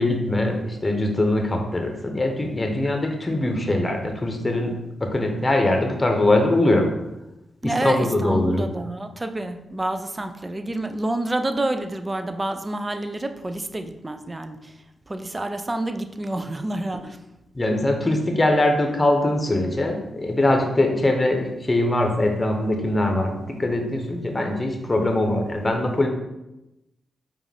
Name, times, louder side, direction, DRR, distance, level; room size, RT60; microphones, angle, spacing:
voice 1, 0.0-4.7 5.0-6.9 7.6-8.7 17.5-26.1, left 1 dB, 30° left, 3 dB, 0.9 m, -22 dB
voice 2, 7.6-14.7 15.1-17.2, right 1 dB, 25° right, 8 dB, 0.4 m, -28 dB
4.8 x 2.5 x 3.4 m, 0.92 s
supercardioid pair, 45°, 0 cm